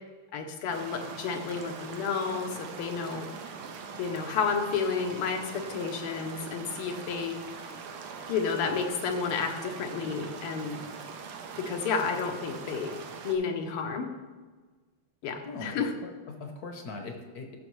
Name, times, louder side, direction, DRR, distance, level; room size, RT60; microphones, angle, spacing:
voice 1, 0.3-3.3 4.0-7.4 8.3-10.8 11.6-13.0 13.2-14.1 15.2-15.9, left 5 dB, 90° left, 5 dB, 1.8 m, -31 dB
sound 1, 0.7-13.4, right 5 dB, 85° right, 1.7 m, -42 dB
voice 2, 15.4-17.6, left 3 dB, 60° left, 3 dB, 1.1 m, -41 dB
14.0 x 6.3 x 3.1 m, 1.4 s
omnidirectional pair, 2.4 m